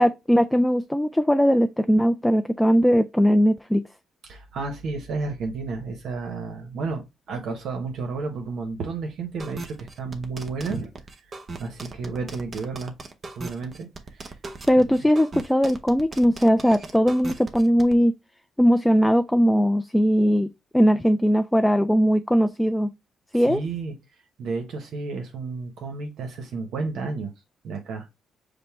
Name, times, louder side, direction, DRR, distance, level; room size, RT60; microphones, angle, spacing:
voice 1, 0.0-3.8 14.7-18.1 18.6-20.5 20.7-22.9 23.3-23.6, equal, 5° left, 0.3 m, -19 dB
voice 2, 4.2-7.0 7.3-10.9 11.6-12.9 13.4-14.4 14.8-14.9 23.3-23.9 24.4-27.3 27.6-28.1, right 4 dB, 75° right, 0.9 m, -32 dB
sound 1, 9.4-17.9, right 3 dB, 40° right, 0.8 m, -38 dB
5.1 x 2.1 x 4.5 m
cardioid pair, 90°, 0 cm